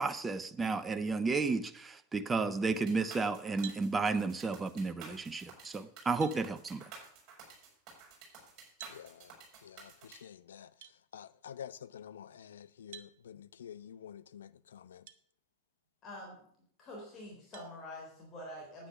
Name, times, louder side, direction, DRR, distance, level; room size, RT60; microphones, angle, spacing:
voice 1, 0.0-6.8, right 4 dB, 15° right, 0.7 m, -32 dB
sound 1, 2.6-10.2, right 5 dB, 35° right, 6.1 m, -52 dB
sound 2, 3.6-3.9 5.6-5.7 6.2-6.4 8.8-9.0 10.8-11.0 12.9-13.1 15.1-15.2 15.9-16.0 17.5-17.7, right 10 dB, 55° right, 0.9 m, -48 dB
voice 2, 8.9-9.3 9.6-10.7 11.1-15.0, left 9 dB, 65° left, 0.5 m, -49 dB
voice 3, 16.0-16.4 16.8-18.9, left 1 dB, 30° left, 3.9 m, -46 dB
9.7 x 9.2 x 6.7 m
figure-of-eight pair, 90°, 0 cm